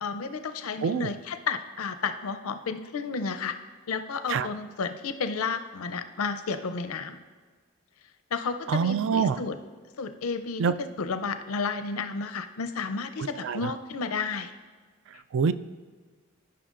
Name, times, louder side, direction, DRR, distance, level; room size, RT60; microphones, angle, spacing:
voice 1, 0.0-3.6 3.9-7.2 8.3-9.6 10.0-14.5 15.1-15.2, left 5 dB, 85° left, 9 dB, 0.5 m, -32 dB
voice 2, 0.8-1.1 4.3-4.5 8.7-9.4 10.6-10.7 13.4-13.7 15.3-15.5, right 6 dB, 60° right, 13 dB, 0.3 m, -25 dB
14.0 x 5.7 x 2.5 m, 1.5 s
head